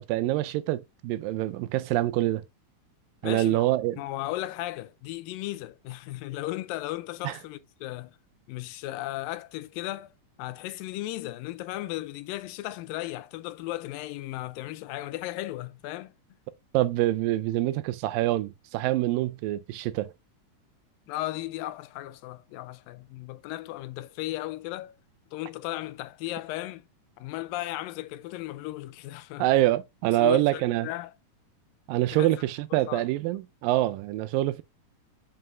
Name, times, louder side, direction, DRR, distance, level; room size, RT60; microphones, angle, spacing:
voice 1, 0.0-2.4 3.2-4.0 7.2-7.4 16.7-20.1 29.4-30.9 31.9-34.6, right 15 dB, 85° right, 2.3 m, -25 dB
voice 2, 3.2-3.7 4.0-8.2 8.5-10.1 10.4-16.1 21.1-24.9 25.3-26.8 27.2-29.5 30.2-31.1 32.1-32.3 32.7-33.1, left 16 dB, 85° left, 2.3 m, -35 dB
7.5 x 5.4 x 2.6 m
omnidirectional pair, 4.0 m